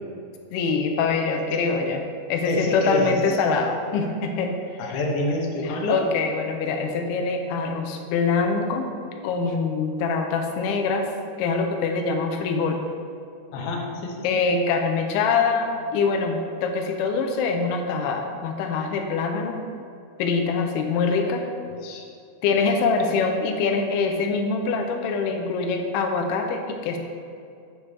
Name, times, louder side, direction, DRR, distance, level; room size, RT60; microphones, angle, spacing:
voice 1, 0.5-2.0 2.3-4.6 4.8-5.0 5.6-8.9 9.2-11.1 11.4-12.8 14.2-19.7 20.2-21.5 22.4-27.0, left 4 dB, 90° left, 3 dB, 2.6 m, -24 dB
voice 2, 2.5-3.4 4.8-6.0 13.5-14.4 21.8-22.1, left 1 dB, 70° left, -1 dB, 2.4 m, -28 dB
8.8 x 6.7 x 3.3 m, 2.4 s
omnidirectional pair, 4.4 m